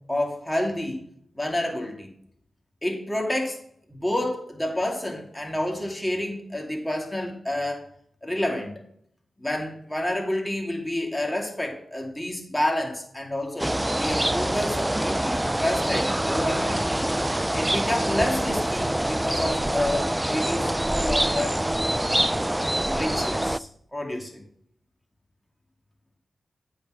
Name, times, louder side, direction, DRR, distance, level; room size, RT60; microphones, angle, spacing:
voice 1, 0.1-1.0 1.4-2.1 2.8-3.6 3.9-7.9 8.2-8.8 9.4-16.8 17.5-21.6 22.8-24.4, left 1 dB, 10° left, 0 dB, 2.7 m, -29 dB
sound 1, 13.6-23.6, right 1 dB, 10° right, 0.3 m, -25 dB
8.2 x 4.3 x 6.4 m, 0.66 s
cardioid pair, 65°, 0 cm